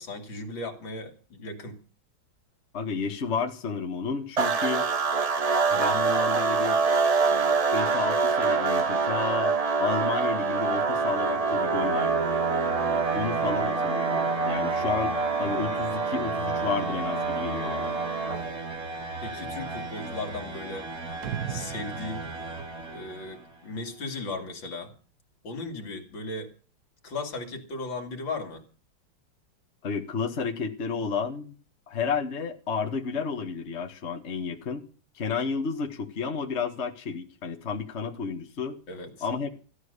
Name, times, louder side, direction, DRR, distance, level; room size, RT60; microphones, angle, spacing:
voice 1, 0.0-1.8 19.2-20.9 21.5-22.3 22.9-24.9 25.4-26.5 27.0-28.6 38.9-39.3, left 3 dB, 70° left, 5 dB, 3.1 m, -36 dB
voice 2, 2.7-4.9 5.7-6.8 7.3-9.5 9.8-12.3 13.1-17.9 29.8-31.5 31.9-34.8 35.1-38.8 39.2-39.5, left 5 dB, 35° left, 4 dB, 1.6 m, -31 dB
sound 1, 4.4-18.6, right 5 dB, 80° right, 0.3 m, -26 dB
sound 2, 10.7-23.6, right 3 dB, 45° right, 3.8 m, -34 dB
sound 3, 21.2-23.7, right 10 dB, 60° right, 1.3 m, -38 dB
15.5 x 12.0 x 6.7 m, 0.38 s
omnidirectional pair, 2.2 m